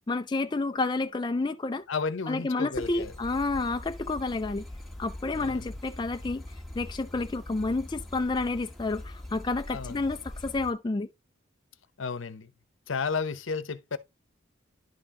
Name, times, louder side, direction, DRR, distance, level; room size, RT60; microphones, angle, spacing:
voice 1, 0.1-1.8 2.3-4.6 5.0-6.4 6.7-11.1, left 3 dB, 20° left, 0.4 m, -30 dB
voice 2, 1.9-3.1 5.3-5.7 9.7-10.1 12.0-12.5 12.9-14.0, left 5 dB, 75° left, 0.8 m, -33 dB
sound 1, 2.7-10.7, left 1 dB, ahead, 1.5 m, -42 dB
11.0 x 4.4 x 3.6 m
head